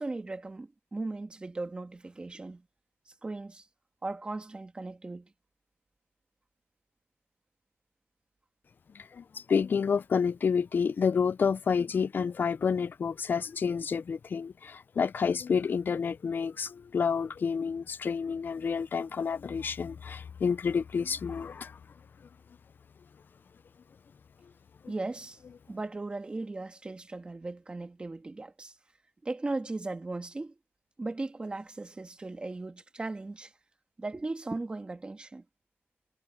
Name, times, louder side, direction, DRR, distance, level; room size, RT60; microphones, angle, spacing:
voice 1, 0.0-2.6 3.2-3.6 4.0-5.3 24.9-25.4 25.7-28.7 29.2-30.5 31.0-33.5 34.0-35.4, right 2 dB, 20° right, 1.7 m, -37 dB
voice 2, 9.0-21.7, left 6 dB, 45° left, 0.5 m, -29 dB
wide cardioid pair, 175°, 5 cm